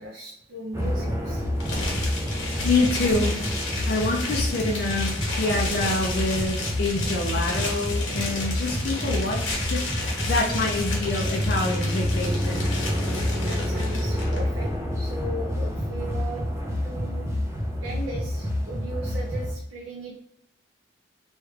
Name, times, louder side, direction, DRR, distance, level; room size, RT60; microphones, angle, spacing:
voice 1, 0.0-1.4 2.1-2.5 13.3-16.5 16.8-17.2 17.8-20.2, right 1 dB, 80° right, -1 dB, 0.5 m, -38 dB
sound 1, 0.7-19.5, left 1 dB, 15° right, 0.4 m, -28 dB
sound 2, 1.6-14.4, left 2 dB, 75° left, 1.1 m, -32 dB
voice 2, 2.6-3.4 3.9-12.7, left 2 dB, 55° left, -1 dB, 0.4 m, -27 dB
3.1 x 2.3 x 3.2 m, 0.78 s
head